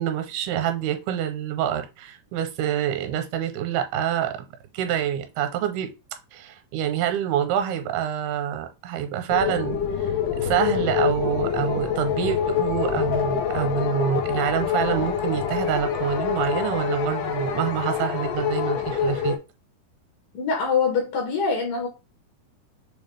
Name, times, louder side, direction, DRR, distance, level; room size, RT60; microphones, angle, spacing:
voice 1, 0.0-4.3 4.7-5.9 6.3-19.3, right 10 dB, 85° right, 2.6 m, -26 dB
sound 1, 9.3-19.4, left 8 dB, 85° left, 2.9 m, -26 dB
voice 2, 20.3-21.9, left 5 dB, 70° left, 2.6 m, -24 dB
6.9 x 2.4 x 3.3 m
omnidirectional pair, 4.5 m